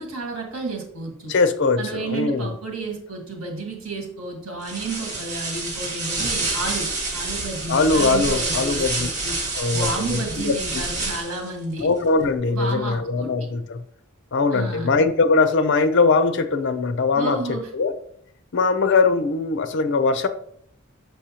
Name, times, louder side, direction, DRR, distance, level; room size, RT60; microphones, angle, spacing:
voice 1, 0.0-1.3 1.8-9.3 9.7-11.9 12.5-13.3 14.5-14.9 17.1-17.7, right 3 dB, 85° right, 2 dB, 1.6 m, -31 dB
voice 2, 1.3-2.5 7.7-9.1 9.6-10.8 11.8-13.8 14.3-17.9 18.5-20.3, left 4 dB, 60° left, 10 dB, 0.6 m, -21 dB
sound 1, 4.6-11.5, right 2 dB, 35° right, 1.9 m, -28 dB
6.4 x 5.5 x 2.9 m, 0.65 s
head